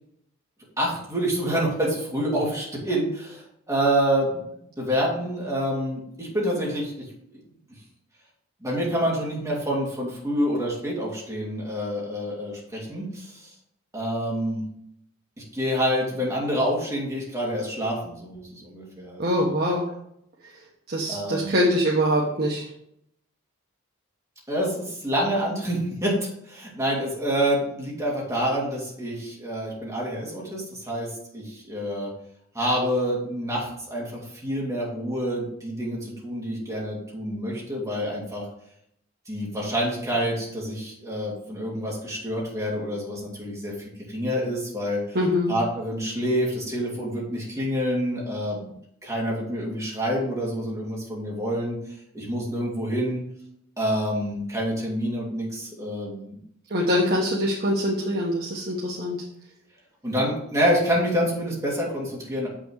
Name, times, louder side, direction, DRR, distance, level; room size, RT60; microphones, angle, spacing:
voice 1, 0.8-4.4 4.8-7.0 7.3-7.4 8.6-13.5 13.9-14.6 15.5-19.5 21.1-21.5 24.5-26.2 26.5-32.1 32.5-38.4 39.3-43.7 44.1-45.0 45.5-48.7 49.0-51.7 52.1-53.2 53.8-56.4 60.0-62.5, equal, 15° right, -4 dB, 2.7 m, -27 dB
voice 2, 19.2-19.9 20.4-20.5 20.9-22.7 45.1-45.5 56.7-59.2, equal, 50° right, -4 dB, 1.3 m, -24 dB
7.6 x 6.2 x 4.8 m, 0.72 s
head